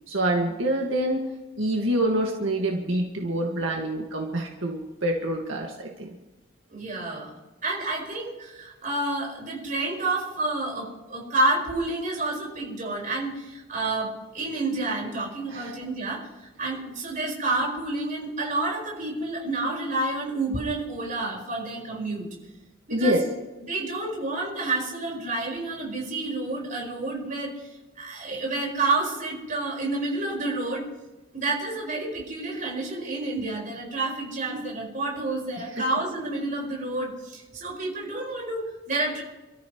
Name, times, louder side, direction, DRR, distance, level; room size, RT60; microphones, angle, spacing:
voice 1, 0.1-1.3 1.6-6.1 15.5-15.7 22.9-23.2 35.8-35.9, right 1 dB, 85° right, 0 dB, 1.9 m, -26 dB
voice 2, 6.7-7.3 7.6-22.3 22.9-23.2 23.6-27.6 28.0-30.9 31.3-39.2, right 2 dB, 40° right, -2 dB, 5.2 m, -29 dB
28.5 x 13.5 x 3.2 m, 1.1 s
head